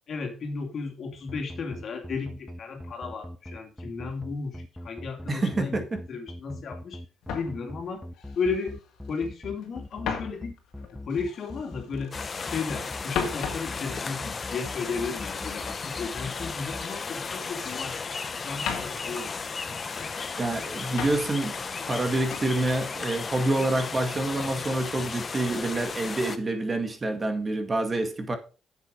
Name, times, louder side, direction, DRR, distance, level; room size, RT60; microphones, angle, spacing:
voice 1, 0.1-7.0 7.3-8.0 8.3-8.8 9.1-10.6 10.9-12.2 12.4-20.1, left 4 dB, 60° left, 2.5 m, -34 dB
sound 1, 1.3-16.8, left 1 dB, 5° left, 0.7 m, -40 dB
voice 2, 5.3-6.0 20.4-28.4, right 2 dB, 30° right, 1.9 m, -27 dB
sound 2, 7.2-9.3 9.6-12.4 12.7-16.9 17.2-18.1 18.5-20.3 20.7-21.6 21.8-22.5 23.0-23.3, left 7 dB, 85° left, 2.2 m, -39 dB
sound 3, 12.1-26.4, left 5 dB, 35° left, 0.9 m, -35 dB
8.1 x 7.4 x 5.0 m
cardioid pair, 90°, 0 cm